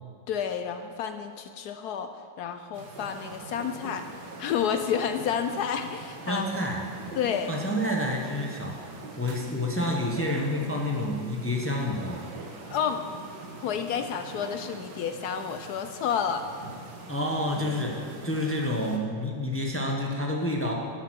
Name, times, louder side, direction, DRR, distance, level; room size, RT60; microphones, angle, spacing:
voice 1, 0.3-2.1 2.4-4.0 4.4-6.4 7.2-7.5 12.7-13.0 13.6-16.4, left 7 dB, 70° left, 8 dB, 0.9 m, -30 dB
sound 1, 2.7-19.0, right 3 dB, 60° right, 1.8 m, -43 dB
voice 2, 6.3-6.8 7.5-8.8 9.2-12.2 17.1-20.7, left 1 dB, 10° left, 0 dB, 0.7 m, -29 dB
11.0 x 8.2 x 6.4 m, 2.2 s
omnidirectional pair, 2.2 m